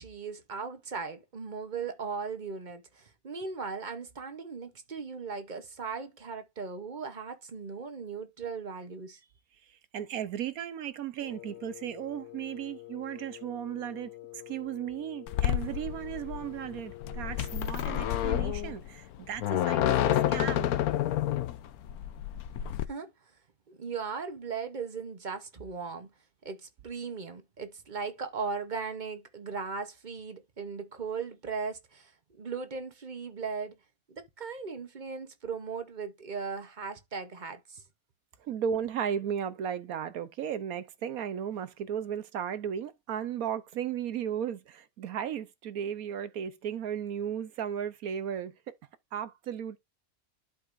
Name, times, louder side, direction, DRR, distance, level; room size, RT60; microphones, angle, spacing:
voice 1, 0.0-9.2 22.9-23.1 23.7-26.1 26.4-33.8 34.1-37.8, right 5 dB, 35° right, 0.9 m, -38 dB
voice 2, 9.9-14.1 14.5-20.7 38.4-48.5 49.1-49.8, right 9 dB, 75° right, 1.2 m, -35 dB
Wind instrument woodwind instrument, 11.2-17.9, left 16 dB, 65° left, 1.1 m, -48 dB
sound 1, 15.3-22.9, left 11 dB, 85° left, 1.2 m, -29 dB
12.0 x 5.0 x 2.6 m
omnidirectional pair, 1.5 m